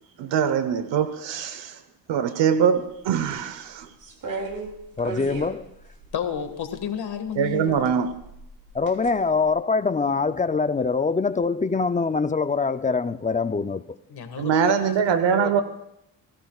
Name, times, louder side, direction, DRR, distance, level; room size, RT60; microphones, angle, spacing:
voice 1, 0.2-1.8 2.1-3.9 7.4-8.1 14.4-15.6, right 7 dB, 85° right, 1.0 m, -23 dB
sound 1, 4.0-6.8 7.7-9.1 9.5-9.6, right 3 dB, 50° right, 3.2 m, -35 dB
voice 2, 5.0-5.7 8.7-13.8, left 4 dB, 20° left, 0.5 m, -24 dB
voice 3, 6.1-8.0 14.1-15.6, left 8 dB, 65° left, 1.9 m, -32 dB
29.0 x 16.0 x 2.4 m
cardioid pair, 110°, 43 cm